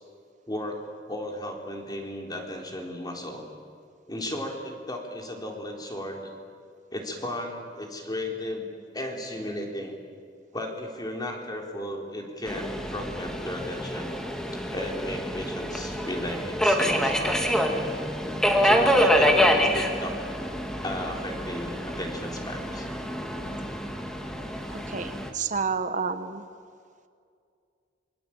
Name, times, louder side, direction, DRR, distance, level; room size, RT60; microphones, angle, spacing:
voice 1, 0.5-0.8 1.1-3.4 4.1-6.3 6.9-8.7 8.9-10.0 10.5-14.1 14.7-17.4 18.6-20.2 20.8-22.9, left 1 dB, 20° left, 2 dB, 3.9 m, -34 dB
Subway metro underground, 12.5-25.3, equal, 5° left, 2.3 m, -26 dB
voice 2, 24.7-26.5, right 5 dB, 45° right, 9 dB, 1.0 m, -30 dB
27.0 x 23.5 x 8.9 m, 2.3 s
head